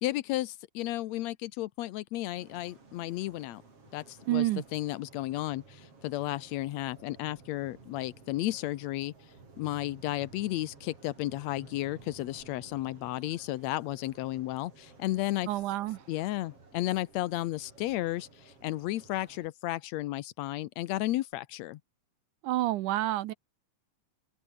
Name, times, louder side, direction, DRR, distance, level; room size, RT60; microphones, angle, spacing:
voice 1, 0.0-3.6 3.9-15.5 16.1-21.8, left 16 dB, 80° left, 1.6 m, -33 dB
sound 1, 2.4-19.5, right 3 dB, 40° right, 6.2 m, -55 dB
voice 2, 4.3-4.6 15.5-16.0 22.4-23.3, right 15 dB, 75° right, 2.0 m, -29 dB
open air
omnidirectional pair, 4.0 m